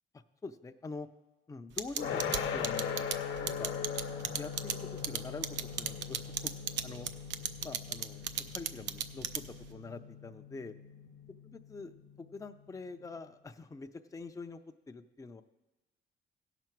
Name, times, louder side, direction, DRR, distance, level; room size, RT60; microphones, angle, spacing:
voice 1, 0.1-1.1 1.5-2.2 2.5-3.8 4.3-6.5 6.8-7.1 7.6-9.4 9.7-10.7 11.4-14.6 14.9-15.4, left 3 dB, 15° left, 7 dB, 0.5 m, -45 dB
sound 1, 1.8-9.7, right 9 dB, 65° right, 0.6 m, -35 dB
sound 2, 2.0-12.9, left 7 dB, 80° left, 0.8 m, -40 dB
16.0 x 6.0 x 4.5 m, 1.1 s
cardioid pair, 90°, 20 cm